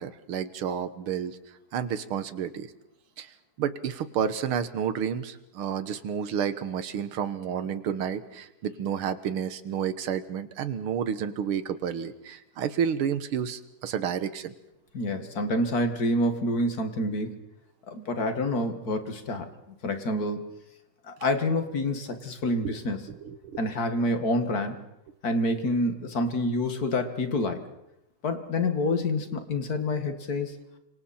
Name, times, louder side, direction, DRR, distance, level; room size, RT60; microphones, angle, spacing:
voice 1, 0.0-1.4 1.7-2.7 3.2-3.3 3.6-14.5 22.6-22.7 23.2-23.6, right 8 dB, 85° right, 12 dB, 2.1 m, -30 dB
voice 2, 14.9-17.4 17.9-19.5 19.8-20.5 21.1-23.0 23.6-24.8 25.2-27.7 28.2-30.5, left 1 dB, 45° left, 7 dB, 2.4 m, -27 dB
29.5 x 26.5 x 4.3 m, 0.85 s
omnidirectional pair, 2.3 m